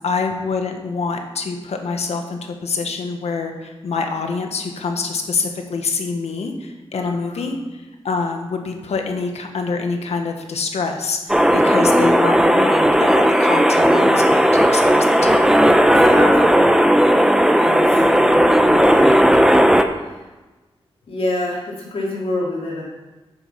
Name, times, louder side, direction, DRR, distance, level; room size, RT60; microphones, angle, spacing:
voice 1, 0.0-7.6 8.0-15.3 18.0-18.4, left 4 dB, 90° left, 4 dB, 1.3 m, -26 dB
voice 2, 6.9-7.5 11.5-11.8 15.9-16.6 17.6-18.0 18.8-19.2 19.9-20.2 21.1-22.8, left 2 dB, 65° left, -4 dB, 3.1 m, -27 dB
sound 1, 11.3-19.8, equal, 5° right, 0.7 m, -14 dB
9.3 x 7.0 x 5.7 m, 1.2 s
wide cardioid pair, 90°, 11 cm